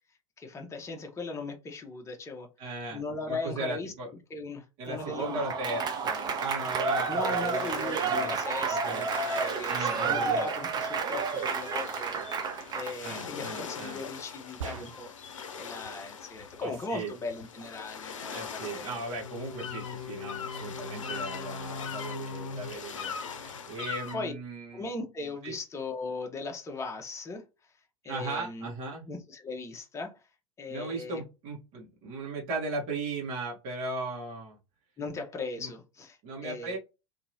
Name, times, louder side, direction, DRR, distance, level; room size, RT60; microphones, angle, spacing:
voice 1, 0.4-2.5 2.9-3.9 4.3-5.4 5.7-5.8 7.1-12.2 12.7-15.1 15.6-19.0 24.1-24.3 24.7-27.4 28.0-28.7 29.1-30.2 30.6-31.2 35.0-36.8, left 3 dB, 15° left, 0.8 m, -38 dB
voice 2, 2.6-3.0 3.3-4.1 4.8-8.3 8.8-9.1 9.7-10.5 13.0-14.0 16.6-17.1 18.3-24.9 25.4-25.5 28.1-29.1 30.7-34.6 35.6-35.7 36.2-36.8, right 3 dB, 50° right, 1.3 m, -37 dB
Applause / Crowd, 4.9-13.1, right 5 dB, 25° right, 0.5 m, -30 dB
sound 1, 5.7-24.2, left 6 dB, 75° left, 0.6 m, -41 dB
sound 2, 14.6-15.3, right 5 dB, 75° right, 0.6 m, -40 dB
2.9 x 2.7 x 2.8 m
figure-of-eight pair, 80°, 17 cm